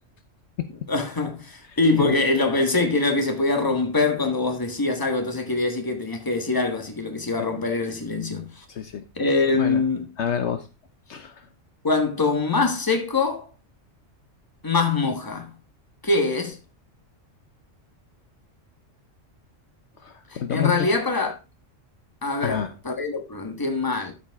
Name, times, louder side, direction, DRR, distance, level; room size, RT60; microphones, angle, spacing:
voice 1, 0.9-8.6 9.2-10.1 11.8-13.5 14.6-15.5 16.0-16.6 20.3-21.4 22.2-24.1, left 3 dB, 15° left, 1.3 m, -24 dB
voice 2, 8.7-9.0 9.6-9.8 10.2-10.6 11.1-11.4 20.0-20.7 22.4-22.7, left 7 dB, 65° left, 1.0 m, -28 dB
12.5 x 5.1 x 3.5 m
omnidirectional pair, 1.3 m